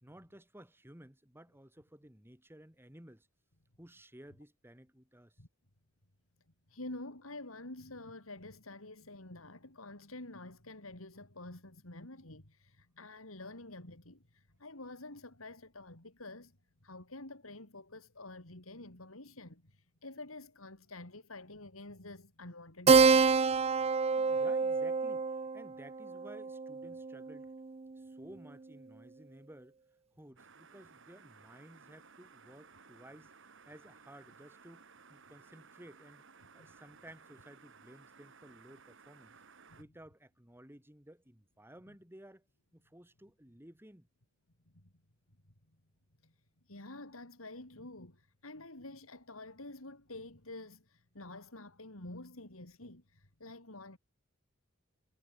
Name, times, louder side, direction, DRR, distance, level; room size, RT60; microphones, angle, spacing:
voice 1, 0.0-3.3 3.8-5.4 24.1-27.5 28.0-29.8 30.2-34.8 35.1-39.4 39.7-42.5 42.7-44.1, right 1 dB, 10° right, 2.6 m, -55 dB
voice 2, 6.7-16.6 16.8-23.5 36.6-36.7 39.7-39.9 44.7-44.9 46.2-46.3 46.7-54.0, left 2 dB, 80° left, 4.4 m, -48 dB
Keyboard (musical), 22.9-27.8, right 4 dB, 30° right, 0.5 m, -27 dB
sound 1, 30.4-39.8, right 5 dB, 60° right, 2.4 m, -59 dB
head